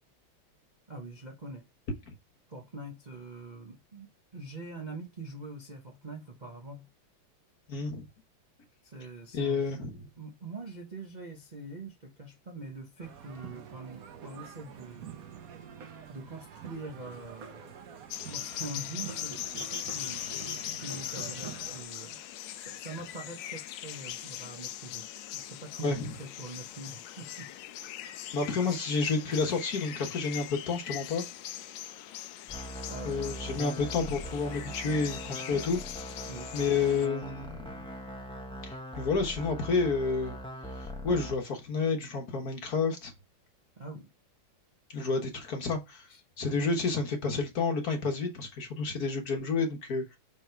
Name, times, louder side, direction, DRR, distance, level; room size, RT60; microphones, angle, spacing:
voice 1, 0.9-1.7 2.5-6.9 8.8-9.9 10.2-15.3 16.1-17.8 18.3-20.3 20.8-22.2 22.6-25.1 25.3-27.5 29.4-29.6 32.8-33.2 36.3-36.5 43.8-44.1 46.1-46.2, right 2 dB, 35° right, 0.7 m, -44 dB
voice 2, 7.7-8.0 9.3-10.1 25.8-26.1 28.3-31.2 33.0-35.8 36.5-37.8 38.6-40.4 40.8-43.1 44.9-46.1 46.4-50.2, left 4 dB, 50° left, 1.6 m, -30 dB
sound 1, 13.0-21.8, right 8 dB, 60° right, 1.0 m, -46 dB
sound 2, 18.1-37.1, left 12 dB, 80° left, 1.4 m, -41 dB
sound 3, 32.5-41.3, equal, 5° left, 0.4 m, -41 dB
6.0 x 3.7 x 4.6 m
omnidirectional pair, 2.2 m